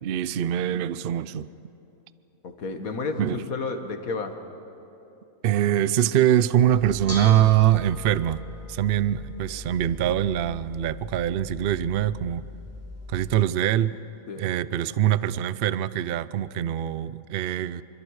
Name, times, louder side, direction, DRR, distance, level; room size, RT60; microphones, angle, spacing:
voice 1, 0.0-1.5 3.2-3.4 5.4-8.4 8.7-12.5 13.1-13.9 14.4-17.8, right 11 dB, 60° right, 17 dB, 0.6 m, -23 dB
voice 2, 2.4-4.4 14.3-14.5, left 4 dB, 75° left, 6 dB, 1.9 m, -31 dB
Bell / Dishes pots and pans, 6.7-13.3, left 2 dB, 10° right, 2.8 m, -40 dB
27.0 x 24.5 x 4.8 m, 3.0 s
omnidirectional pair, 1.5 m